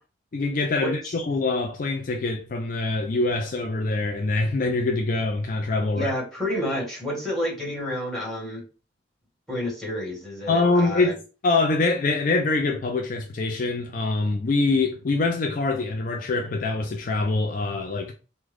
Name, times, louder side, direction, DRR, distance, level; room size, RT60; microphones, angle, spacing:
voice 1, 0.3-6.1 10.5-11.2 11.4-18.1, left 3 dB, 50° left, 0.4 m, -24 dB
voice 2, 5.9-8.6 9.5-11.1, equal, ahead, 1.4 m, -29 dB
3.6 x 2.2 x 3.3 m
head